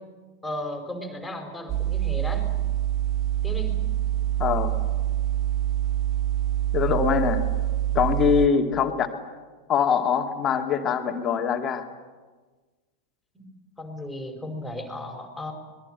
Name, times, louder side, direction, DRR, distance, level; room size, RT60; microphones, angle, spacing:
voice 1, 0.4-2.5 3.4-3.7 7.9-8.0 13.3-13.5 13.8-15.5, left 1 dB, 5° left, 4 dB, 5.1 m, -35 dB
sound 1, 1.7-8.5, right 13 dB, 30° right, 1.1 m, -25 dB
voice 2, 4.4-4.7 6.7-7.4 7.9-9.1 9.7-11.9, left 7 dB, 25° left, 4 dB, 2.3 m, -23 dB
24.5 x 21.0 x 9.0 m, 1.3 s
figure-of-eight pair, 90°, 0 cm